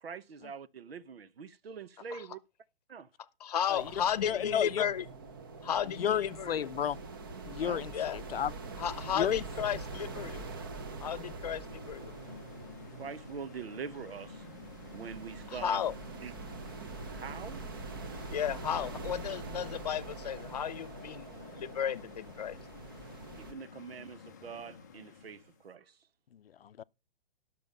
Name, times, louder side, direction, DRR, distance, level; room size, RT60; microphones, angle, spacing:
voice 1, 0.0-2.4 2.9-3.1 7.6-7.8 12.9-14.5 14.9-15.8 16.2-16.3 17.1-17.6 23.4-26.0, right 6 dB, 75° right, 1.0 m, -44 dB
voice 2, 3.4-5.0 5.6-6.7 7.9-8.2 8.8-10.5 11.0-12.1 15.5-15.9 18.3-21.3 21.5-22.6, left 9 dB, 40° left, 0.9 m, -34 dB
sound 1, 3.7-23.5, right 3 dB, 20° right, 0.7 m, -44 dB
voice 3, 4.2-4.9 5.9-7.0 7.5-8.5 9.1-9.4 26.3-26.8, left 9 dB, 70° left, 0.6 m, -32 dB
sound 2, 11.1-25.7, left 6 dB, 20° left, 0.6 m, -52 dB
12.0 x 6.9 x 5.4 m
hypercardioid pair, 175°, 31 cm